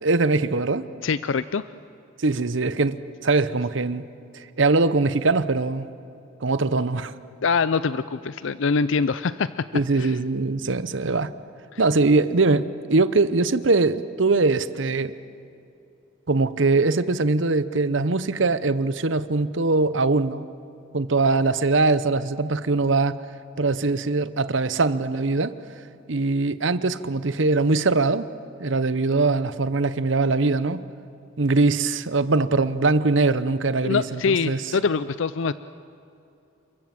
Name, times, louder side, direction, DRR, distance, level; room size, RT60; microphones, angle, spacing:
voice 1, 0.0-0.9 2.2-4.1 4.3-5.9 6.4-7.1 9.7-11.3 11.8-15.1 16.3-20.4 20.9-23.2 23.6-25.5 26.1-28.3 28.6-30.8 31.4-34.6, right 3 dB, 65° right, 0.9 m, -22 dB
voice 2, 1.0-1.7 7.4-9.5 10.0-10.2 11.7-11.8 33.8-35.5, left 5 dB, 70° left, 0.5 m, -24 dB
29.0 x 23.0 x 7.7 m
head